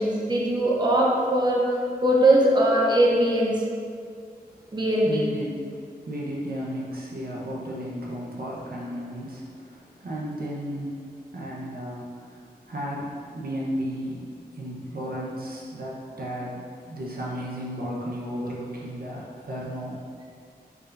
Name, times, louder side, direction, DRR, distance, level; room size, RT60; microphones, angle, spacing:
voice 1, 0.0-1.6 2.0-3.6 4.7-5.2, right 1 dB, 25° right, -4 dB, 1.1 m, -20 dB
voice 2, 5.0-5.6 6.1-14.3 14.5-20.0, equal, 65° right, -4 dB, 1.2 m, -34 dB
6.5 x 5.4 x 2.7 m, 2.2 s
cardioid pair, 55°, 16 cm